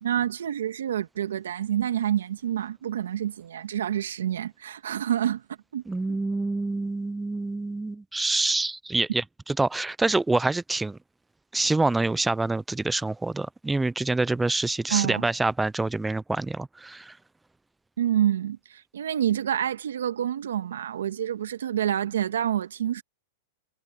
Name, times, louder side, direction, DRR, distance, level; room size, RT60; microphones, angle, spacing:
voice 1, 0.0-5.4 5.7-5.8 6.1-6.2 14.9-15.3 18.0-23.0, right 10 dB, 85° right, 1.9 m, -27 dB
voice 2, 5.9-11.0 11.5-17.2, right 2 dB, 10° right, 0.5 m, -26 dB
hypercardioid pair, 120°, 0 cm